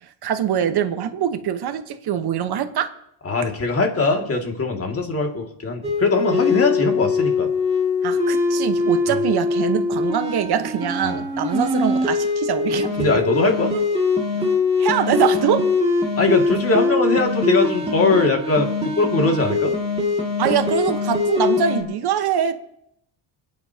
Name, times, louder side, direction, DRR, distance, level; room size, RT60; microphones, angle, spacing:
voice 1, 0.0-2.9 8.0-13.2 14.8-15.7 20.4-22.5, right 8 dB, 55° right, 8 dB, 1.3 m, -23 dB
voice 2, 3.2-7.5 9.1-9.2 11.0-11.2 13.0-13.7 16.2-19.7, left 3 dB, 30° left, 2 dB, 2.4 m, -21 dB
sound 1, 5.8-21.8, left 3 dB, 15° right, 2.4 m, -22 dB
28.0 x 9.8 x 2.9 m, 0.77 s
cardioid pair, 120°, 45 cm